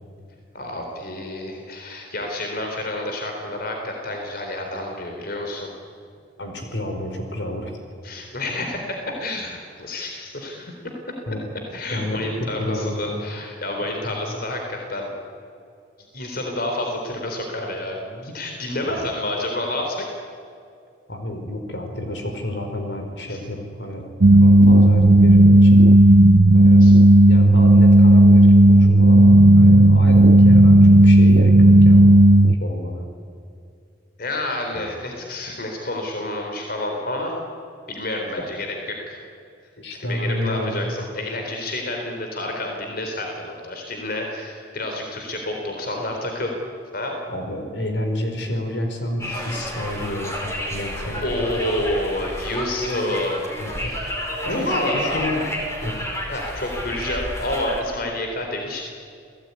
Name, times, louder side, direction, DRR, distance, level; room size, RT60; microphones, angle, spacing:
voice 1, 0.5-5.7 8.0-10.7 11.7-15.1 16.1-20.1 23.3-23.4 26.8-26.9 34.2-37.3 37.9-39.2 40.0-46.6 46.9-47.2 49.3-49.4 51.2-53.5 53.8-54.1 54.5-55.3 56.3-58.8, left 1 dB, 55° left, 2 dB, 4.0 m, -29 dB
voice 2, 6.4-7.7 8.5-8.6 11.3-12.2 12.6-13.2 14.0-14.4 21.1-24.1 24.3-25.8 26.5-32.2 32.6-33.1 34.7-34.9 39.8-40.9 47.3-51.4 53.6-53.9 54.4-55.5 55.8-55.9, left 1 dB, 75° left, 4 dB, 4.6 m, -30 dB
sound 1, 24.2-32.6, right 1 dB, 55° right, 0.6 m, -11 dB
Conversation, 49.2-57.8, equal, 15° left, 5.2 m, -31 dB
30.0 x 19.0 x 9.7 m, 2.4 s
head